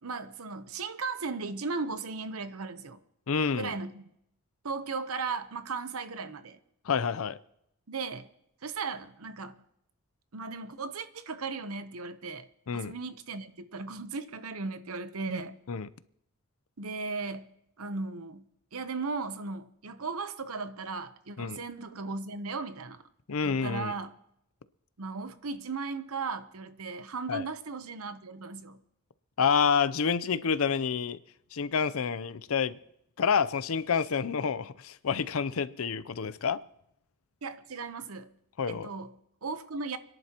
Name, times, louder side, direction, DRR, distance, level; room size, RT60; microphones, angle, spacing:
voice 1, 0.0-3.0 3.5-4.1 4.6-6.6 7.9-8.3 8.6-9.5 10.3-12.5 12.7-15.6 16.8-17.5 17.8-18.5 18.7-23.0 23.4-24.1 25.0-28.8 37.4-38.3 38.7-40.0, right 4 dB, 75° right, 0.8 m, -36 dB
voice 2, 3.3-3.7 6.9-7.4 12.7-12.9 15.7-15.9 21.4-21.6 23.3-23.9 27.3-27.4 29.4-31.2 31.5-32.8 33.2-36.6 38.6-38.9, left 6 dB, 65° left, 0.6 m, -28 dB
29.5 x 11.0 x 2.9 m
head